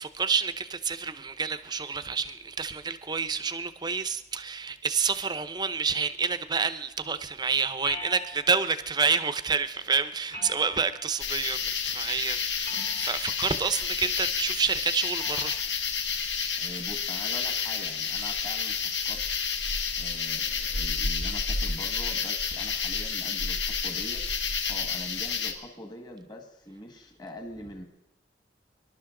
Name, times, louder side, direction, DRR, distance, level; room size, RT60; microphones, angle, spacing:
voice 1, 0.0-15.6, right 5 dB, 25° right, 0.6 m, -28 dB
sound 1, 7.8-8.7 10.3-11.2 12.6-13.3 15.2-15.6, left 2 dB, 50° left, 5.5 m, -42 dB
sound 2, 11.2-25.5, left 6 dB, 80° left, 1.5 m, -30 dB
voice 2, 16.6-18.8 19.0-19.2 20.0-24.2 24.7-27.8, left 1 dB, 25° left, 1.6 m, -43 dB
25.0 x 12.0 x 3.8 m
head